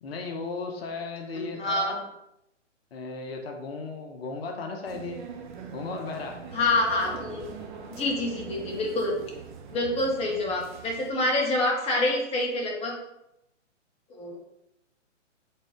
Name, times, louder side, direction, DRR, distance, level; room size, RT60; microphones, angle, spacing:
voice 1, 0.0-2.0 2.9-5.2 5.7-6.4, left 3 dB, 50° left, 3 dB, 1.2 m, -35 dB
voice 2, 1.3-1.9 6.5-7.4 7.9-9.1 9.7-13.0 14.1-14.4, left 2 dB, 15° left, -1 dB, 1.3 m, -27 dB
sound 1, 4.8-11.1, right 5 dB, 40° right, 1.0 m, -41 dB
7.4 x 4.0 x 3.6 m, 0.83 s
hypercardioid pair, 135°, 38 cm